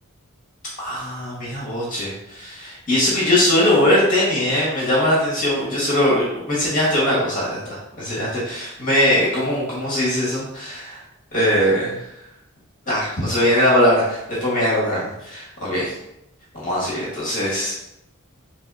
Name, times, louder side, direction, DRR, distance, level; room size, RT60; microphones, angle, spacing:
voice 1, 0.8-11.0 11.3-12.0 12.8-15.9 16.5-17.7, left 1 dB, 35° left, -6 dB, 1.4 m, -21 dB
4.1 x 3.3 x 3.9 m, 0.84 s
head